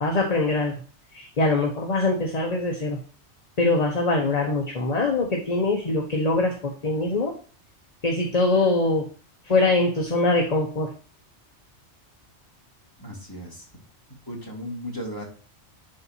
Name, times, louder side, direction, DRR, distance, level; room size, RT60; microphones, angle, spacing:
voice 1, 0.0-0.7 1.1-3.0 3.6-6.5 6.8-7.3 8.0-9.1 9.5-10.9, left 2 dB, 35° left, 1 dB, 1.1 m, -23 dB
voice 2, 13.0-13.7 14.3-15.3, equal, 15° left, -1 dB, 2.4 m, -35 dB
11.5 x 4.2 x 2.8 m, 0.40 s
omnidirectional pair, 1.2 m